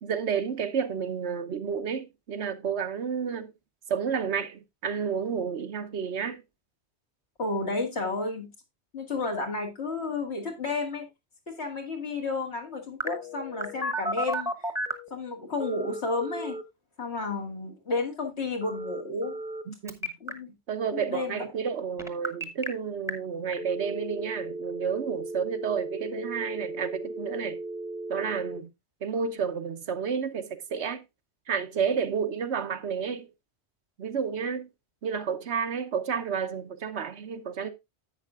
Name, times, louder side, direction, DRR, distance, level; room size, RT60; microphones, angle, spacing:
voice 1, 0.0-3.5 3.9-6.4 19.7-20.1 20.7-27.6 28.1-28.7 29.0-31.0 31.5-33.3 34.0-34.7 35.0-37.7, right 6 dB, 80° right, 1.2 m, -31 dB
voice 2, 7.4-8.5 8.9-11.1 11.5-14.7 15.1-16.6 17.0-19.4 20.2-20.5 20.9-21.4, left 3 dB, 75° left, 2.3 m, -32 dB
Telephone, 13.0-15.1 15.6-16.6 18.6-19.6 19.9-20.3 22.0-22.7 23.1-23.2 23.5-28.6, right 1 dB, 5° right, 0.9 m, -34 dB
10.5 x 8.5 x 2.4 m
omnidirectional pair, 1.1 m